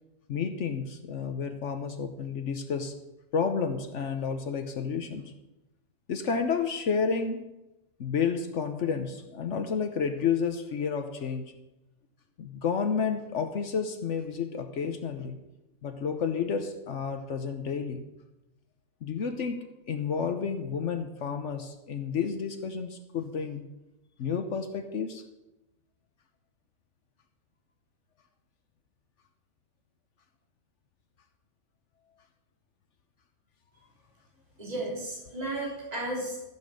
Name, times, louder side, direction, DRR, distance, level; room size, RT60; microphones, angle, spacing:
voice 1, 0.3-2.9 3.3-5.3 6.1-7.5 8.0-11.5 12.4-15.4 15.8-18.0 19.0-23.7 24.2-25.2, left 6 dB, 75° left, 1.3 m, -31 dB
voice 2, 34.6-36.5, right 1 dB, 30° right, 3.4 m, -34 dB
15.0 x 6.3 x 7.7 m
omnidirectional pair, 1.3 m